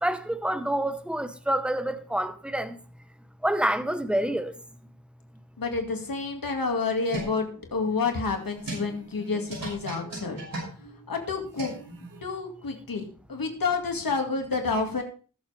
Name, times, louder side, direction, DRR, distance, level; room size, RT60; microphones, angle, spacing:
voice 1, 0.0-2.8 3.4-4.5, right 1 dB, 5° right, 1.1 m, -27 dB
voice 2, 5.6-10.4 11.1-11.7 12.2-15.0, left 4 dB, 80° left, 2.2 m, -29 dB
sound 1, 6.6-12.2, right 1 dB, 85° right, 6.1 m, -38 dB
19.5 x 7.3 x 3.4 m
wide cardioid pair, 85°, 34 cm